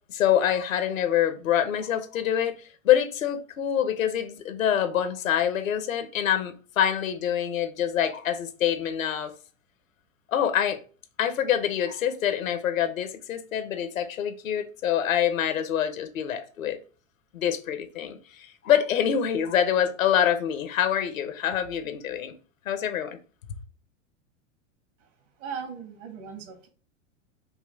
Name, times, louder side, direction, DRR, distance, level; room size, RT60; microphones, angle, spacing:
voice 1, 0.1-9.3 10.3-10.8 11.2-16.8 17.3-22.3 22.7-23.2, left 9 dB, 85° left, 0.9 m, -26 dB
voice 2, 25.4-26.7, right 6 dB, 65° right, 1.6 m, -38 dB
5.4 x 2.3 x 3.4 m
hypercardioid pair, 105°, 39 cm